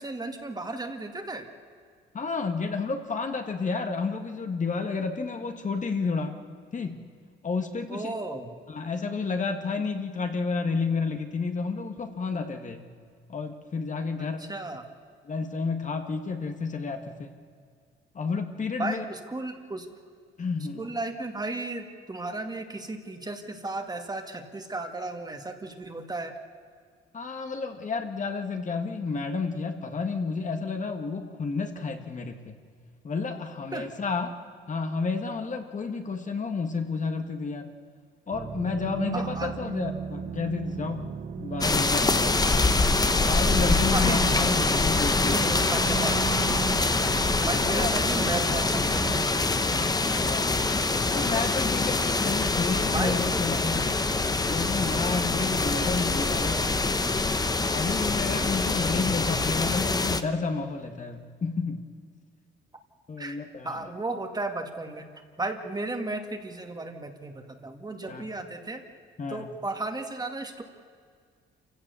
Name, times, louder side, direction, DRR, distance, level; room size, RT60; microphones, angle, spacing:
voice 1, 0.0-1.5 7.9-8.5 14.2-14.9 18.8-19.9 20.8-26.4 33.7-33.9 39.1-39.7 43.9-44.2 44.9-46.2 47.5-49.5 51.9-52.0 52.9-53.4 56.4-56.7 63.2-63.4 63.6-65.1 65.4-68.8 69.3-70.6, right 2 dB, 20° right, 5 dB, 2.2 m, -34 dB
voice 2, 2.1-6.3 6.7-7.0 7.4-8.1 8.7-12.9 13.3-14.4 15.3-17.3 18.2-19.0 20.4-20.8 27.1-32.5 33.0-34.3 34.7-37.7 38.3-41.1 41.4-42.5 43.2-45.8 47.3-47.9 50.0-50.7 51.1-53.9 54.4-56.7 57.7-61.9 63.1-63.9 68.1-68.2 69.2-69.4, left 4 dB, 40° left, 5 dB, 1.8 m, -31 dB
sound 1, 38.3-49.3, right 6 dB, 45° right, 1.3 m, -36 dB
sound 2, 41.6-60.2, left 3 dB, 20° left, 1.1 m, -25 dB
27.5 x 16.5 x 7.0 m, 2.1 s
cardioid pair, 90°, 20 cm